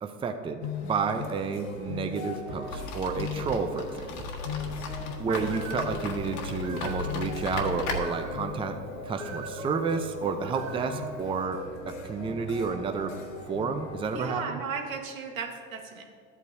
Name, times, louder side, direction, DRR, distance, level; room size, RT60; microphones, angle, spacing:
voice 1, 0.0-4.1 5.2-8.8 9.0-11.6 11.9-13.1 13.5-14.6, right 5 dB, 15° right, 6 dB, 0.5 m, -30 dB
sound 1, 0.6-14.3, left 4 dB, 75° left, 1.7 m, -39 dB
sound 2, 2.6-8.0, left 4 dB, 50° left, 1.6 m, -36 dB
Bird, 5.4-11.4, right 6 dB, 40° right, 1.1 m, -46 dB
voice 2, 10.4-10.9 14.1-16.0, right 5 dB, 90° right, 2 dB, 1.5 m, -36 dB
13.0 x 8.3 x 2.7 m, 2.1 s
hypercardioid pair, 105°, 40 cm